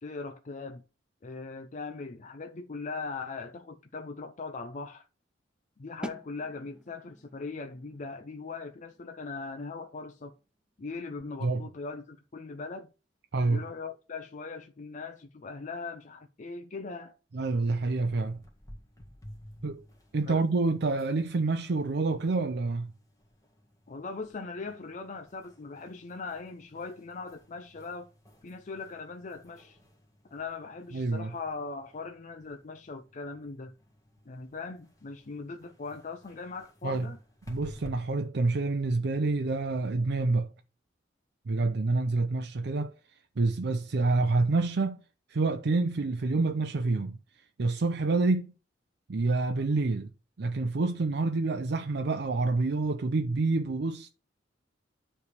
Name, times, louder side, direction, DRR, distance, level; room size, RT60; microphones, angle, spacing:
voice 1, 0.0-0.8 1.2-5.1 5.8-10.3 10.8-12.9 13.5-17.1 20.3-20.4 23.9-28.1 28.4-29.8 30.3-33.7 34.3-37.2, left 4 dB, 40° left, 0.5 m, -40 dB
sound 1, 6.0-11.7, right 1 dB, 5° right, 0.6 m, -48 dB
voice 2, 13.3-13.6 17.3-18.4 19.6-19.8 20.1-22.9 30.9-31.3 36.8-37.1 37.5-40.5 41.5-42.9 43.4-45.0 45.3-47.2 47.6-48.5 49.1-50.1 50.4-54.1, right 3 dB, 60° right, 0.5 m, -27 dB
sound 2, 18.1-37.9, equal, 20° left, 1.7 m, -54 dB
9.6 x 3.4 x 6.6 m
head